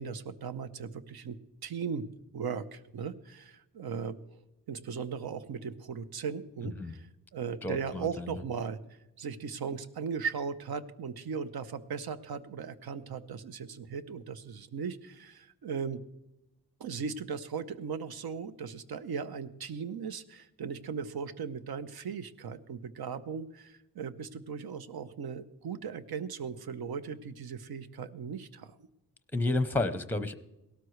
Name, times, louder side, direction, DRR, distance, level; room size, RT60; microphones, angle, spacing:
voice 1, 0.0-2.1 2.3-8.8 9.2-16.0 16.8-28.8, right 6 dB, 70° right, 13 dB, 0.8 m, -38 dB
voice 2, 7.6-8.4 29.3-30.4, left 2 dB, 5° left, 11 dB, 0.7 m, -31 dB
17.5 x 12.5 x 3.2 m, 0.95 s
wide cardioid pair, 125°, 38 cm